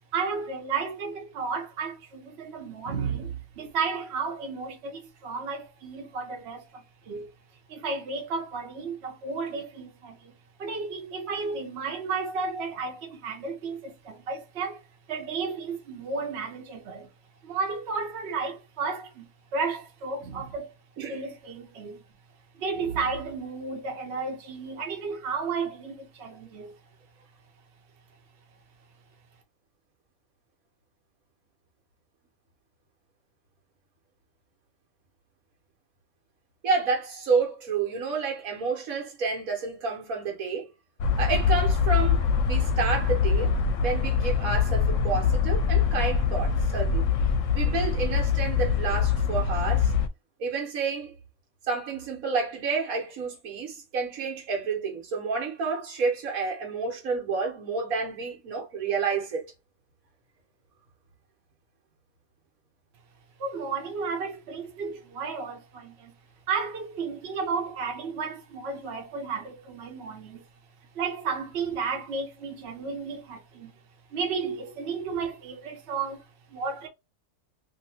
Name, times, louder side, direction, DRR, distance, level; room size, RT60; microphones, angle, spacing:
voice 1, 0.1-7.3 7.7-10.3 10.6-14.8 15.1-17.1 17.4-20.7 21.1-22.0 22.6-26.8 63.4-66.1 66.5-70.4 70.9-73.7 74.1-76.9, right 5 dB, 55° right, 1.0 m, -33 dB
voice 2, 36.6-40.7 41.2-43.5 43.8-47.0 47.5-49.9 50.4-51.2 51.7-59.4, right 4 dB, 85° right, 1.5 m, -29 dB
sound 1, 41.0-50.1, left 6 dB, 70° left, 0.9 m, -24 dB
2.9 x 2.7 x 2.7 m
omnidirectional pair, 1.4 m